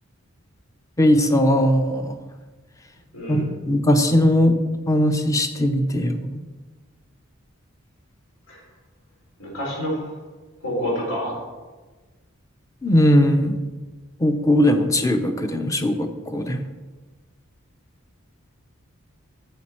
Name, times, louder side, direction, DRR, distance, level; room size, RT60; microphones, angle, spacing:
voice 1, 1.0-2.2 3.3-4.6 4.9-6.4 12.8-13.6 14.2-16.6, equal, 15° left, 8 dB, 0.6 m, -19 dB
voice 2, 3.1-3.5 8.5-8.6 9.4-10.0 10.6-11.4, equal, 80° left, -4 dB, 3.2 m, -27 dB
8.9 x 6.9 x 4.3 m, 1.3 s
head